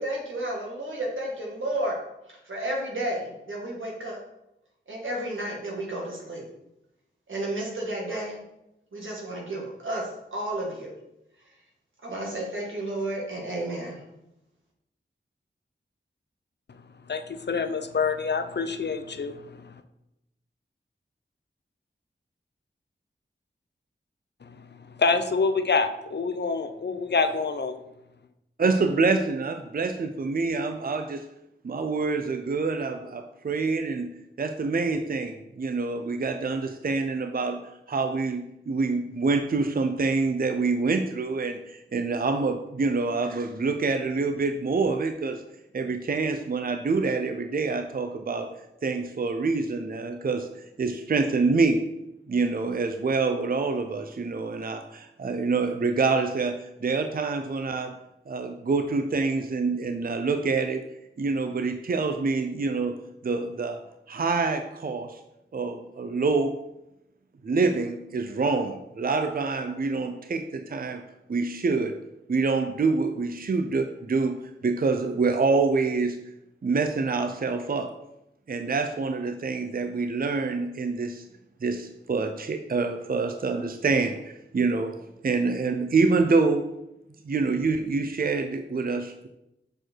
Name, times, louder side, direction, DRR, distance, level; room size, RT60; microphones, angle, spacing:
voice 1, 0.0-2.0 2.5-4.2 4.9-6.4 7.3-8.4 8.9-10.0 10.3-10.9 12.0-14.0, right 1 dB, 85° right, -2 dB, 1.9 m, -32 dB
voice 2, 17.1-19.8 24.4-27.8, left 4 dB, 60° left, 9 dB, 0.6 m, -27 dB
voice 3, 28.6-31.2 31.6-34.1 34.4-37.6 37.9-45.4 45.7-48.5 48.8-50.5 50.8-51.8 52.3-58.0 58.3-60.8 61.2-62.9 63.2-63.8 64.1-65.2 65.5-66.5 67.4-71.0 71.3-71.9 72.3-76.2 76.6-77.9 78.5-81.2 81.6-85.0 85.2-86.7 87.2-89.3, right 4 dB, 50° right, 6 dB, 0.5 m, -26 dB
6.4 x 4.5 x 4.5 m, 0.88 s
wide cardioid pair, 45°, 20 cm